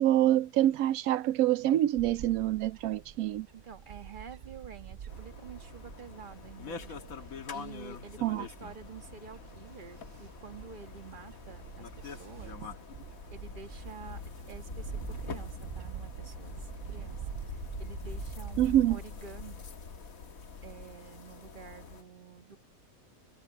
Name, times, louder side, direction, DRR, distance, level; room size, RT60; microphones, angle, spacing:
voice 1, 0.0-3.5 8.2-8.5 18.6-19.0, right 13 dB, 90° right, 1.0 m, -26 dB
Bird / Wind, 2.0-19.0, right 9 dB, 60° right, 0.6 m, -46 dB
voice 2, 3.5-12.7 13.3-14.2 14.5-19.6 20.6-22.6, right 6 dB, 40° right, 1.5 m, -49 dB
sound 1, 5.1-22.0, left 5 dB, 85° left, 1.9 m, -45 dB
sound 2, 5.7-12.5, left 2 dB, 45° left, 3.9 m, -57 dB
omnidirectional pair, 1.4 m